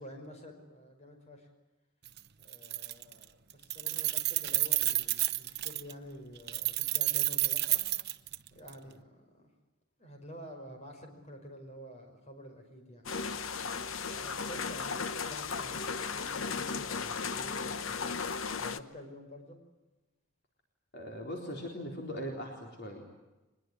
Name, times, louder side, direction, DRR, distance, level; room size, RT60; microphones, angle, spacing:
voice 1, 0.0-1.5 2.4-7.8 8.5-9.5 10.0-13.0 14.0-18.1 18.6-19.6, equal, 30° left, 4 dB, 5.3 m, -49 dB
Keys jangling, 2.1-2.2 2.5-3.2 3.5-5.9 6.5-8.7, right 17 dB, 50° right, 0.9 m, -30 dB
sound 1, 13.1-18.8, left 5 dB, 70° left, 1.0 m, -36 dB
voice 2, 20.9-23.0, equal, 50° left, 1 dB, 4.1 m, -40 dB
23.5 x 21.5 x 9.4 m, 1.1 s
head